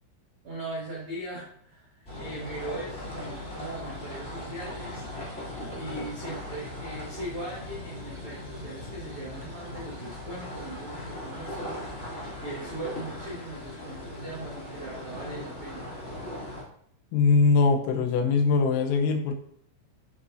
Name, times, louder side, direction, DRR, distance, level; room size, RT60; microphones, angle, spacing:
voice 1, 0.4-5.1 5.7-11.8 12.0-15.9, right 1 dB, 90° right, -5 dB, 1.2 m, -39 dB
sound 1, 2.0-16.6, left 1 dB, 20° left, 2.4 m, -39 dB
voice 2, 17.1-19.3, left 4 dB, 90° left, 5 dB, 3.7 m, -22 dB
11.0 x 7.6 x 2.8 m, 0.67 s
omnidirectional pair, 5.8 m